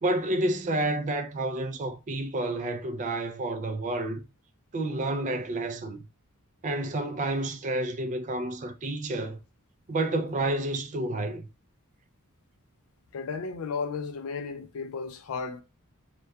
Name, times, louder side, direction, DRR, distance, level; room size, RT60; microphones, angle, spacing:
voice 1, 0.0-4.2 4.7-6.1 6.6-9.4 9.9-11.5, right 2 dB, 35° right, 0.3 m, -29 dB
voice 2, 13.1-15.6, left 5 dB, 70° left, 0.4 m, -34 dB
2.2 x 2.2 x 2.5 m
head